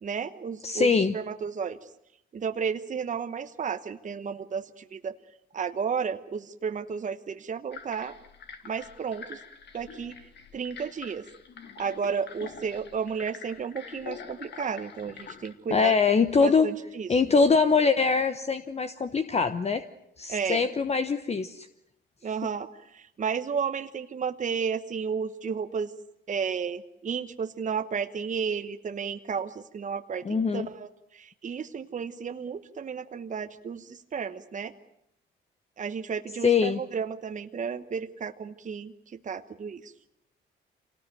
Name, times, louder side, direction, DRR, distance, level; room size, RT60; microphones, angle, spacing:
voice 1, 0.0-1.8 2.3-5.1 5.5-8.2 8.6-9.4 9.7-11.2 11.8-15.9 16.4-17.2 20.3-20.7 22.2-25.9 26.3-34.7 35.8-38.9 39.2-39.9, right 6 dB, 40° right, 8 dB, 1.1 m, -33 dB
voice 2, 0.6-1.1 15.7-16.7 17.1-19.8 20.2-21.7 30.2-30.7 36.4-36.8, left 5 dB, 30° left, 9 dB, 1.0 m, -23 dB
sound 1, 7.7-15.5, left 6 dB, 60° left, 2.4 m, -45 dB
26.0 x 18.5 x 9.3 m, 0.81 s
cardioid pair, 90°, 20 cm